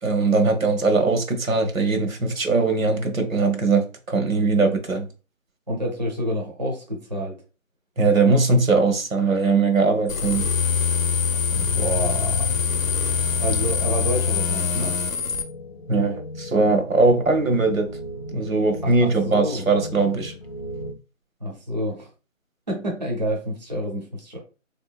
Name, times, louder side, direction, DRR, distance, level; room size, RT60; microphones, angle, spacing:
voice 1, 0.0-5.1 8.0-10.5 15.9-17.9 18.3-20.3, right 3 dB, 85° right, 1.0 m, -20 dB
voice 2, 5.7-7.4 11.5-12.9 13.4-15.0 18.8-19.7 21.4-22.1 22.7-24.4, equal, 35° right, 0.6 m, -28 dB
sound 1, 10.1-15.4, left 6 dB, 80° left, 0.7 m, -23 dB
sound 2, 12.6-20.9, left 1 dB, 40° left, 0.6 m, -39 dB
3.1 x 2.8 x 2.3 m
figure-of-eight pair, 165°, 40 cm